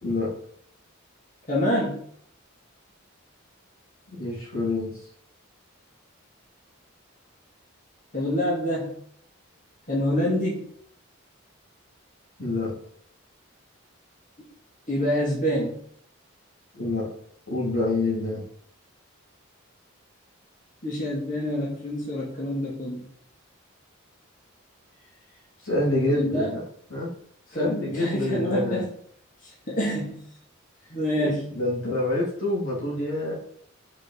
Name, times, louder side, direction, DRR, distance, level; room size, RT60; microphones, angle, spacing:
voice 1, 1.5-2.0 8.1-9.0 9.9-10.6 14.9-15.8 20.8-23.0 26.1-26.5 27.5-28.8 29.7-30.2 30.9-31.5, equal, 40° left, -4 dB, 2.3 m, -26 dB
voice 2, 4.2-4.9 12.4-12.7 16.7-17.1 17.5-18.4 25.6-26.6 26.9-27.1 27.5-28.8 31.1-33.3, left 2 dB, 80° left, -5 dB, 3.9 m, -27 dB
6.0 x 5.9 x 7.1 m, 0.65 s
head